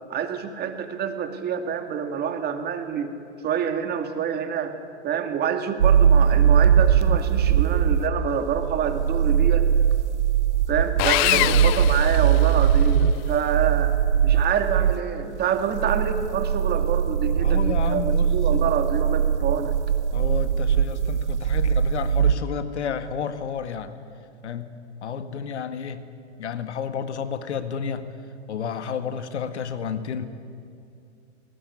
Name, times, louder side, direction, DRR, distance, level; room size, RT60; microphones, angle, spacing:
voice 1, 0.1-3.1 3.4-4.8 5.0-9.7 10.7-14.0 14.2-19.8, right 7 dB, 30° right, 7 dB, 2.4 m, -27 dB
sound 1, 5.8-15.0 15.6-22.3, right 8 dB, 90° right, 1.0 m, -21 dB
Sawing, 11.0-12.9, left 19 dB, 35° left, 0.6 m, -24 dB
voice 2, 11.3-11.7 17.4-18.6 20.1-23.9 24.4-24.7 25.0-26.1 26.4-28.1 28.5-30.3, left 7 dB, 80° left, 10 dB, 1.8 m, -31 dB
21.0 x 19.0 x 9.7 m, 2.5 s
hypercardioid pair, 120°, 34 cm